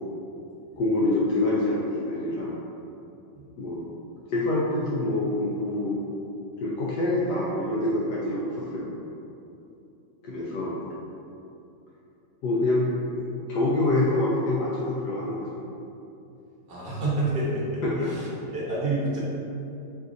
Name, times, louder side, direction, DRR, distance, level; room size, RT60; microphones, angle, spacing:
voice 1, 0.8-2.6 3.6-3.9 4.3-6.0 6.6-9.0 10.2-10.8 12.4-15.6 17.8-18.1, left 2 dB, 70° left, -6 dB, 1.1 m, -26 dB
voice 2, 16.7-17.8 18.1-18.2 18.5-19.2, right 2 dB, 35° right, -7 dB, 1.1 m, -27 dB
4.9 x 2.5 x 3.8 m, 2.7 s
omnidirectional pair, 1.9 m